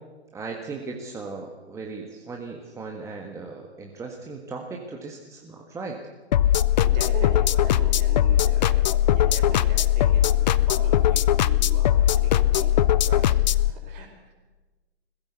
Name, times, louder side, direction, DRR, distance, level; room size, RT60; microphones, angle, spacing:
voice 1, 0.3-6.0, right 4 dB, 10° right, 1 dB, 1.6 m, -37 dB
sound 1, 6.3-13.7, left 12 dB, 40° left, 0.6 m, -20 dB
voice 2, 6.7-14.3, right 5 dB, 40° right, 3 dB, 4.8 m, -40 dB
21.0 x 15.5 x 8.2 m, 1.2 s
figure-of-eight pair, 120°, 34 cm